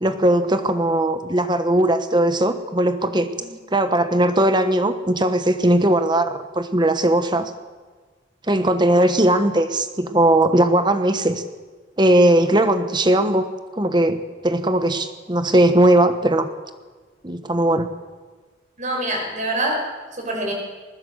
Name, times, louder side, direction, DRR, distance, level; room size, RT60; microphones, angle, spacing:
voice 1, 0.0-3.3 3.7-7.5 8.5-11.4 12.0-13.5 13.7-16.5 17.2-17.9, right 1 dB, 25° right, 9 dB, 1.2 m, -18 dB
voice 2, 18.8-19.9 20.1-20.5, right 1 dB, 40° right, 1 dB, 6.2 m, -25 dB
20.0 x 20.0 x 8.1 m, 1.4 s
head